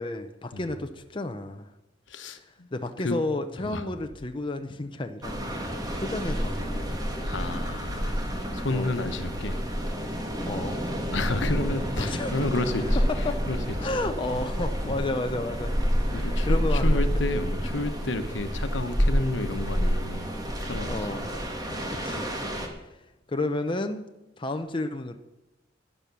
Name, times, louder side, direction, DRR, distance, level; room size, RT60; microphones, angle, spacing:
voice 1, 0.0-1.7 2.7-5.4 6.0-7.0 8.7-8.9 10.5-10.9 12.0-12.3 13.2-13.4 13.8-15.7 16.0-16.1 16.4-17.0 20.9-21.2 21.9-22.3 22.8-23.0 23.3-24.1 24.4-25.2, left 2 dB, 25° left, 0.7 m, -31 dB
voice 2, 2.1-2.7 3.0-3.2 3.6-3.9 7.2-8.2 8.5-9.6 11.1-13.9 14.8-15.0 16.1-20.3 20.6-21.1 21.7-21.9, left 2 dB, 70° left, 1.2 m, -31 dB
sound 1, 5.2-22.7, equal, 20° right, 1.9 m, -28 dB
12.5 x 10.0 x 6.2 m
head